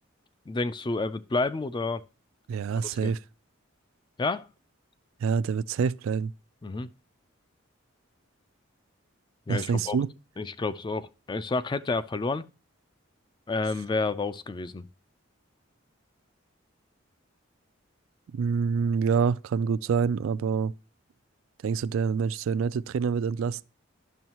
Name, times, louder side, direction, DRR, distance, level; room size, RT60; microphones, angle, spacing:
voice 1, 0.5-2.0 2.9-3.1 4.2-4.5 6.6-6.9 9.5-10.0 10.4-12.4 13.5-14.9, left 3 dB, 20° left, 0.3 m, -30 dB
voice 2, 2.5-3.2 5.2-6.3 9.5-10.1 18.3-20.7 21.6-23.6, right 6 dB, 85° right, 0.3 m, -26 dB
11.0 x 6.3 x 2.9 m
head